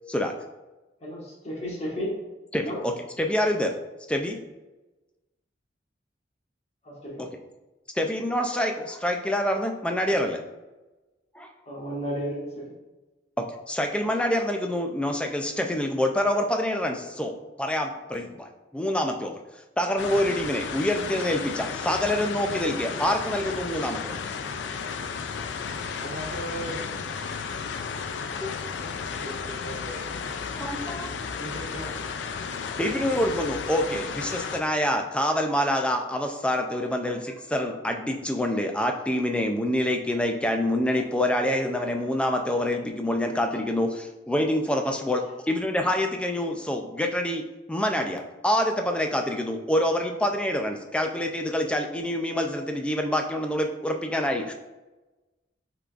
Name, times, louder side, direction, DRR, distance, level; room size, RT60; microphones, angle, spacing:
voice 1, 1.0-2.1 2.6-2.8 6.8-7.2 11.7-12.7, equal, 35° left, -5 dB, 1.5 m, -33 dB
voice 2, 2.5-3.7 4.1-4.4 7.2-7.3 8.0-10.4 11.4-11.5 13.7-19.3 19.8-24.1 28.4-28.5 30.6-31.1 32.8-47.4 47.7-54.5, left 1 dB, 5° left, 4 dB, 0.4 m, -26 dB
sound 1, 20.0-34.6, left 5 dB, 80° left, 0.4 m, -33 dB
voice 3, 26.0-26.8 29.0-30.0 31.4-31.9, right 1 dB, 90° right, -3 dB, 1.2 m, -38 dB
5.6 x 3.8 x 2.4 m, 1.1 s
head